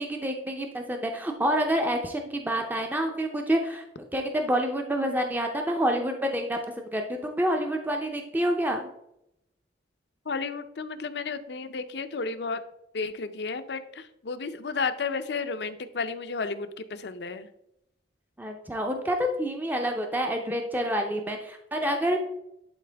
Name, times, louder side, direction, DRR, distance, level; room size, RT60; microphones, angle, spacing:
voice 1, 0.0-3.8 4.1-8.9 18.4-22.2, equal, 10° right, 3 dB, 0.6 m, -28 dB
voice 2, 10.3-12.6 12.9-17.5, left 4 dB, 70° left, 10 dB, 0.6 m, -32 dB
11.0 x 4.3 x 3.4 m, 0.80 s
head